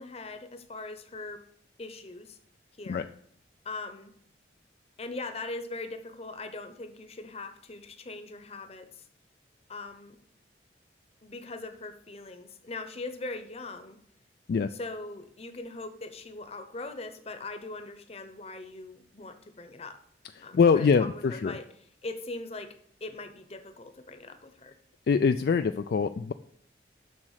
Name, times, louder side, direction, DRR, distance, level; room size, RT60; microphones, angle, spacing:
voice 1, 0.0-1.4 1.8-2.4 2.8-3.1 3.6-4.1 5.0-9.0 9.7-10.2 11.2-14.0 14.7-20.0 20.4-21.7 22.0-22.7 23.0-24.8, left 3 dB, 35° left, 9 dB, 0.8 m, -40 dB
voice 2, 20.3-21.6 25.1-26.3, left 5 dB, 55° left, 9 dB, 0.3 m, -24 dB
7.3 x 6.3 x 6.4 m, 0.68 s
head